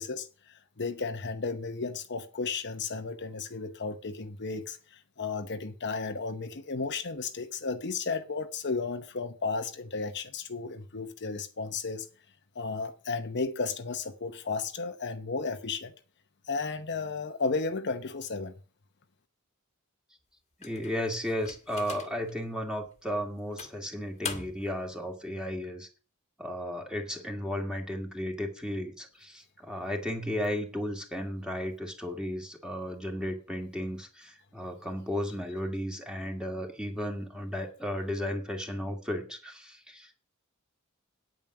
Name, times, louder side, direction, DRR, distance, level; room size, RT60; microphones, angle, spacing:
voice 1, 0.0-12.1 12.5-15.9 16.5-18.5, left 4 dB, 55° left, 0.9 m, -34 dB
sound 1, 20.6-22.3 22.9-23.0 23.6-24.8, left 6 dB, 30° left, 1.6 m, -41 dB
voice 2, 20.6-25.9 26.4-40.1, equal, 5° right, 2.1 m, -34 dB
9.3 x 9.0 x 6.0 m
head